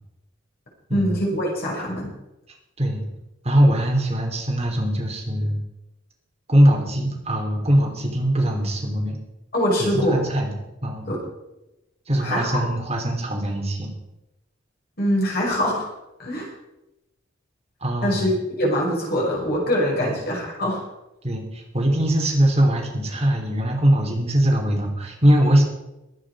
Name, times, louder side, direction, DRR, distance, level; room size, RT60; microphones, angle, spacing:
voice 1, 0.9-2.1 9.5-10.2 11.1-11.2 12.2-12.6 15.0-15.8 16.2-16.5 18.0-20.8, equal, 50° left, -3 dB, 5.9 m, -23 dB
voice 2, 3.4-5.6 6.5-9.2 9.8-11.1 12.1-13.9 17.8-18.3 20.0-20.2 21.2-25.6, equal, 30° right, 0 dB, 3.3 m, -21 dB
22.0 x 8.9 x 4.9 m, 0.95 s
head